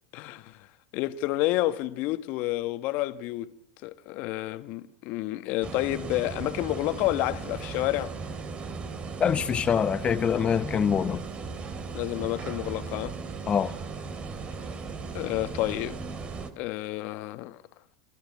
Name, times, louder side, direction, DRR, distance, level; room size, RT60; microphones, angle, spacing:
voice 1, 0.1-0.6 0.9-3.5 3.8-8.1 11.9-13.1 15.1-16.0 16.6-17.6, left 17 dB, 60° left, 1.4 m, -29 dB
sound 1, 5.6-16.5, right 4 dB, 35° right, 2.9 m, -37 dB
voice 2, 9.2-11.2 13.5-13.7, left 7 dB, 35° left, 1.1 m, -24 dB
28.5 x 14.5 x 8.4 m
hypercardioid pair, 90°, 3 cm